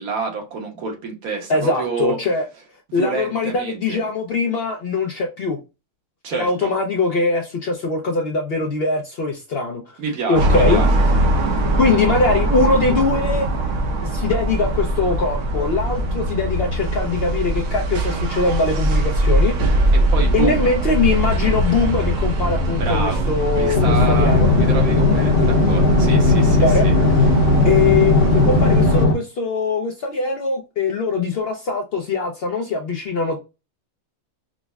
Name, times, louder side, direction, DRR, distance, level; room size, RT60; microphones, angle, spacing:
voice 1, 0.0-2.2 2.9-4.0 6.2-6.7 10.0-11.1 19.9-20.7 22.8-23.3 23.5-26.9, right 5 dB, 90° right, 1.4 m, -28 dB
voice 2, 1.5-2.4 2.9-5.6 6.3-9.8 10.3-10.8 11.8-13.5 14.0-19.8 20.3-24.5 26.5-26.9 27.6-33.4, left 4 dB, 65° left, 0.6 m, -21 dB
sound 1, 10.3-29.0, right 1 dB, 70° right, 0.9 m, -21 dB
sound 2, 23.7-29.1, left 3 dB, 45° left, 0.9 m, -17 dB
4.9 x 2.0 x 2.3 m
omnidirectional pair, 1.5 m